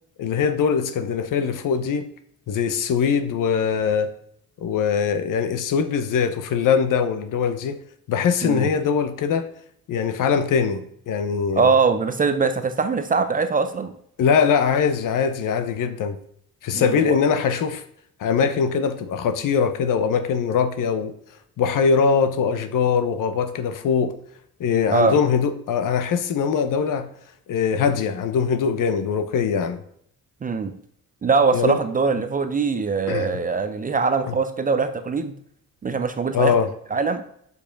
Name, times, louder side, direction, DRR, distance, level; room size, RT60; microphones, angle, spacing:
voice 1, 0.2-2.1 2.5-4.1 4.6-7.8 8.1-9.5 9.9-11.7 14.2-16.2 16.6-17.8 18.2-21.1 21.6-24.1 24.6-27.1 27.5-29.8 31.5-31.8 33.1-33.3 34.3-34.4 36.3-36.7, left 6 dB, 60° left, 11 dB, 0.9 m, -22 dB
voice 2, 11.5-13.9 16.7-17.2 24.9-25.2 30.4-30.7 31.2-35.3 35.8-36.5 36.9-37.2, right 4 dB, 25° right, 9 dB, 0.5 m, -22 dB
6.8 x 5.5 x 5.2 m, 0.68 s
cardioid pair, 160°, 35 cm